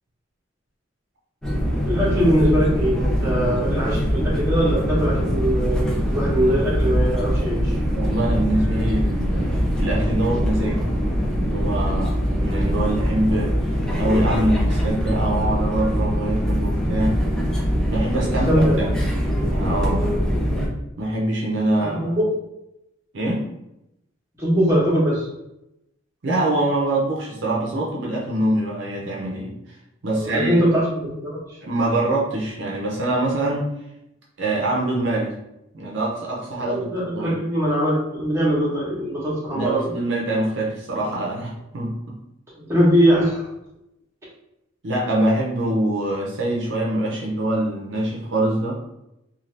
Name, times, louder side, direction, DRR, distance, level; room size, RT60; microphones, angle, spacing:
sound 1, 1.4-20.7, equal, 5° left, 0.4 m, -22 dB
voice 1, 1.8-7.8 18.2-18.7 22.0-22.2 24.4-25.3 30.1-31.4 36.6-39.9 42.6-43.5, equal, 15° right, -7 dB, 1.0 m, -21 dB
voice 2, 7.9-10.9 11.5-17.2 17.9-18.5 18.8-18.9 19.4-20.2 21.0-22.2 23.1-23.5 26.2-29.8 30.0-30.5 31.6-33.7 34.4-35.4 35.7-36.9 37.1-37.4 39.5-42.2 44.8-48.7, right 1 dB, 60° right, -4 dB, 0.6 m, -24 dB
2.6 x 2.4 x 3.2 m, 0.87 s
head